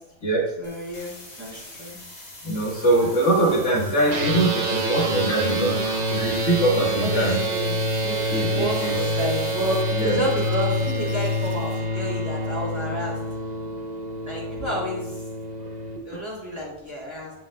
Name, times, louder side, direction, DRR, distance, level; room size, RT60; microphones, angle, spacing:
sound 1, 0.6-11.8, left 1 dB, 30° left, 1.7 m, -43 dB
voice 1, 0.6-2.0 7.0-7.7 8.0-13.2 14.2-15.2 16.0-17.3, equal, 10° right, -5 dB, 2.8 m, -30 dB
voice 2, 2.4-7.4 8.3-9.0 10.0-10.2 15.6-15.7 16.1-16.2, right 1 dB, 55° left, -4 dB, 2.0 m, -23 dB
sound 2, 4.1-16.0, equal, 35° right, 1.0 m, -27 dB
15.5 x 5.5 x 2.4 m, 0.81 s
omnidirectional pair, 1.4 m